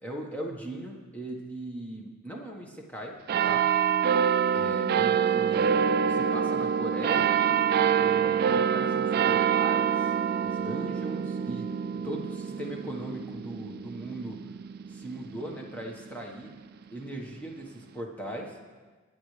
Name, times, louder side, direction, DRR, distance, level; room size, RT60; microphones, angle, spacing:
voice 1, 0.0-3.2 3.4-3.7 4.5-5.8 6.1-7.4 7.9-10.1 10.4-11.7 12.0-14.4 14.9-16.5 16.9-18.6, right 1 dB, 5° left, 0 dB, 1.4 m, -39 dB
sound 1, 3.3-16.2 16.8-16.9, right 7 dB, 45° right, 0.3 m, -26 dB
21.0 x 9.3 x 3.3 m, 1.4 s
head